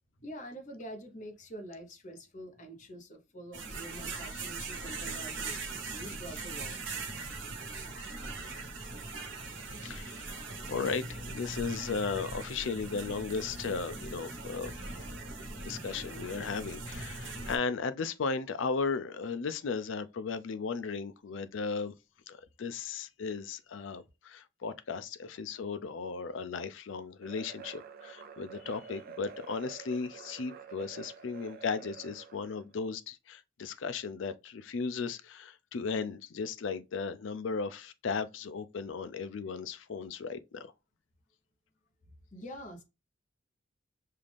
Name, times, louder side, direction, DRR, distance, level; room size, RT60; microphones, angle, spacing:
voice 1, 0.2-7.0 11.5-11.6 42.3-42.8, right 1 dB, 40° left, 1.0 m, -46 dB
sound 1, 3.5-17.6, right 3 dB, 70° right, 1.2 m, -40 dB
voice 2, 9.8-14.8 15.6-21.9 22.3-40.7, left 5 dB, 75° left, 0.4 m, -36 dB
sound 2, 27.2-32.7, right 6 dB, 50° right, 0.5 m, -48 dB
5.6 x 2.5 x 3.3 m
head